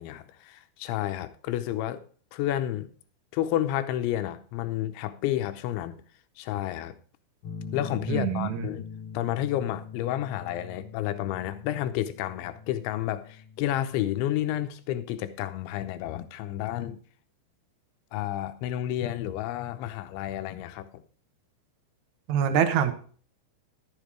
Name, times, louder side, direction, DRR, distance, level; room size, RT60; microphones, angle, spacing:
voice 1, 0.0-2.0 2.3-2.9 3.3-6.0 6.4-7.0 7.7-8.9 9.1-17.0 18.1-21.0, left 12 dB, 90° left, 3.1 m, -30 dB
A Bar up, 7.4-14.7, left 5 dB, 55° left, 2.8 m, -43 dB
voice 2, 8.1-8.7 22.3-22.9, right 8 dB, 85° right, 1.6 m, -24 dB
12.5 x 7.2 x 4.6 m
omnidirectional pair, 5.2 m